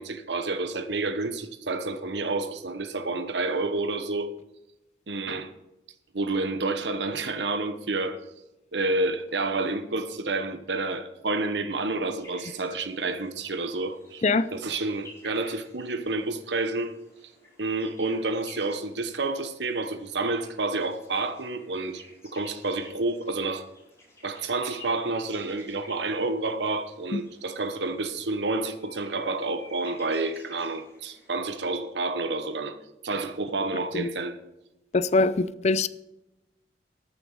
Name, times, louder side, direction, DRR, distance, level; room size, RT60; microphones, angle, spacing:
voice 1, 0.0-4.3 5.1-5.5 6.1-8.2 8.7-14.2 14.5-16.9 17.6-23.7 24.2-32.8 33.0-34.4, right 3 dB, 85° right, 1.1 m, -29 dB
sound 1, 12.2-31.6, left 1 dB, 15° left, 5.1 m, -53 dB
voice 2, 34.9-35.9, left 3 dB, 40° left, 0.5 m, -23 dB
14.0 x 9.0 x 4.8 m
head